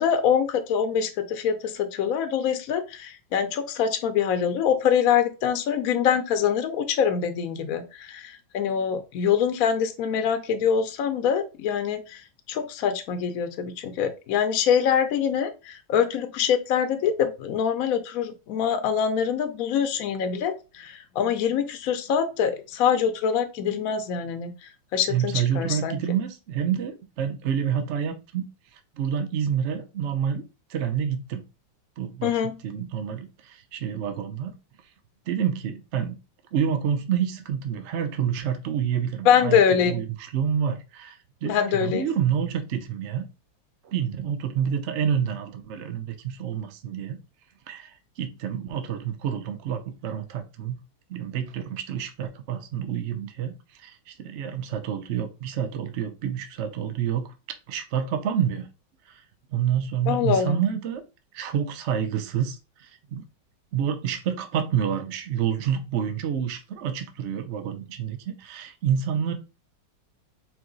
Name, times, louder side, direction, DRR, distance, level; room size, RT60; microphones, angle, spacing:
voice 1, 0.0-12.2 12.5-24.5 24.9-26.0 32.2-32.5 39.3-40.0 41.4-42.0 60.1-60.6, left 8 dB, 65° left, 0.9 m, -24 dB
voice 2, 25.1-28.5 28.7-30.4 30.7-31.4 32.0-34.5 35.3-36.2 36.5-43.2 43.8-47.2 47.7-50.8 51.1-57.3 57.7-58.7 59.1-59.2 59.5-61.0 61.3-63.2 63.7-69.3, right 8 dB, 65° right, 0.6 m, -28 dB
4.6 x 2.9 x 3.9 m
omnidirectional pair, 2.0 m